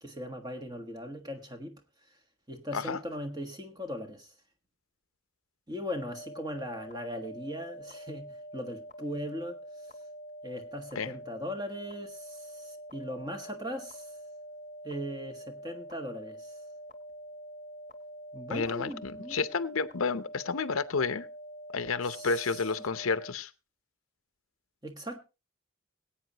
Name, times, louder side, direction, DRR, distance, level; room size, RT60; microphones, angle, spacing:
voice 1, 0.0-1.7 2.5-4.3 5.7-9.6 10.4-14.1 14.8-16.5 18.3-19.4 22.0-22.6 24.8-25.2, equal, 20° right, 1.5 m, -39 dB
sound 1, 5.9-23.3, equal, 35° left, 1.1 m, -46 dB
voice 2, 18.5-21.3 21.7-23.5, left 4 dB, 80° left, 0.7 m, -31 dB
22.0 x 8.7 x 2.9 m
head